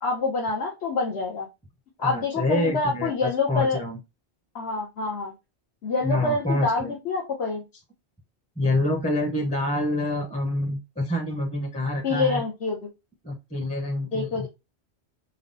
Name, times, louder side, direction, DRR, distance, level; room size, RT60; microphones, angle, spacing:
voice 1, 0.0-1.5 2.0-3.8 4.5-5.3 5.8-7.6 12.0-12.8 14.1-14.5, left 3 dB, 70° left, -2 dB, 1.2 m, -26 dB
voice 2, 2.0-4.0 6.0-6.9 8.6-12.4 13.2-14.5, left 1 dB, 5° left, 1 dB, 0.8 m, -27 dB
5.7 x 2.2 x 3.9 m, 0.24 s
omnidirectional pair, 1.1 m